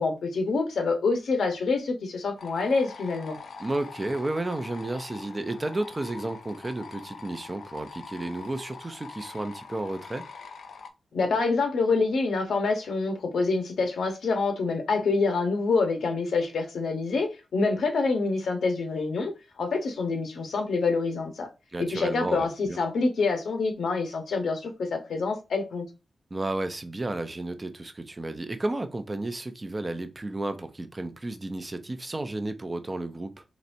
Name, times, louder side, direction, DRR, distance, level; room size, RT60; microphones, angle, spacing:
voice 1, 0.0-3.4 11.1-19.3 19.6-21.5 21.8-25.8, left 4 dB, 90° left, 1.0 m, -26 dB
sound 1, 2.4-10.9, left 5 dB, 70° left, 0.6 m, -44 dB
voice 2, 3.6-10.2 21.7-22.8 26.3-33.4, right 2 dB, 20° right, 0.4 m, -32 dB
4.0 x 3.1 x 2.6 m
wide cardioid pair, 160°, 0 cm